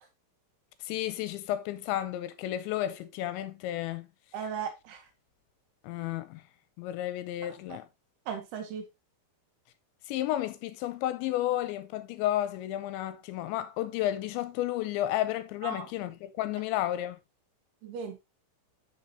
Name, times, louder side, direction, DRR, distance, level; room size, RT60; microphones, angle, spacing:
voice 1, 0.9-4.1 5.8-6.4 6.8-7.8 10.1-17.2, left 13 dB, 85° left, 2.9 m, -32 dB
voice 2, 4.3-5.1 7.7-7.8 8.3-8.9 15.6-15.8 17.8-18.2, right 7 dB, 70° right, 2.8 m, -37 dB
12.0 x 5.3 x 2.9 m
omnidirectional pair, 5.5 m